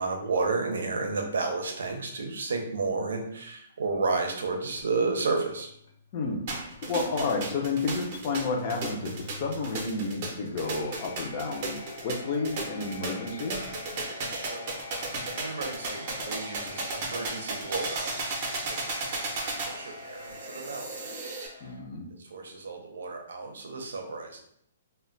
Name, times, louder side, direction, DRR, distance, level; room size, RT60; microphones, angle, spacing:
voice 1, 0.0-5.7 14.3-14.7 15.3-20.9 22.3-24.4, right 3 dB, 85° right, 3 dB, 0.6 m, -32 dB
sound 1, 3.8-21.8, left 4 dB, 90° left, 1.0 m, -46 dB
voice 2, 6.1-13.6 21.6-22.1, left 3 dB, 30° left, 2 dB, 0.4 m, -31 dB
sound 2, 6.5-21.5, right 3 dB, 35° right, 0.5 m, -35 dB
2.2 x 2.1 x 3.7 m, 0.70 s
hypercardioid pair, 170°, 0 cm